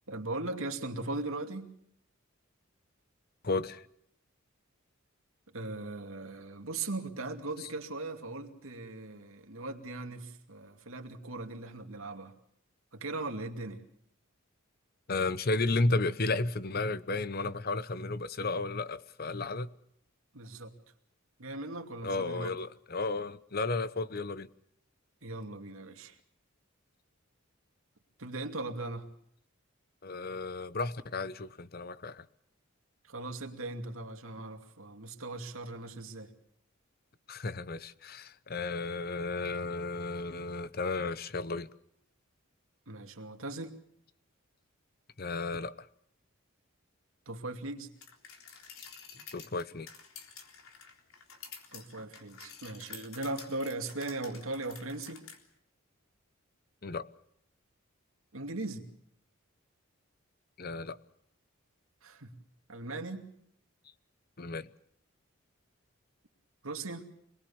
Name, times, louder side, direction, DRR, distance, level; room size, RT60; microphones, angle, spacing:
voice 1, 0.1-1.7 5.5-12.3 12.9-13.8 20.3-20.7 21.4-22.5 25.2-26.2 28.2-29.0 33.1-36.3 42.9-43.7 47.3-47.9 51.7-55.2 58.3-58.9 62.0-62.3 62.7-63.2 66.6-67.1, right 2 dB, 80° right, 2.5 m, -39 dB
voice 2, 3.4-3.9 7.6-7.7 15.1-19.7 22.0-24.5 30.0-32.2 37.3-41.7 45.2-45.9 49.3-49.9 56.8-57.1 60.6-61.0 64.4-64.7, left 3 dB, 45° left, 0.9 m, -33 dB
sound 1, 48.0-55.4, left 6 dB, 80° left, 3.7 m, -50 dB
26.5 x 20.5 x 7.1 m
head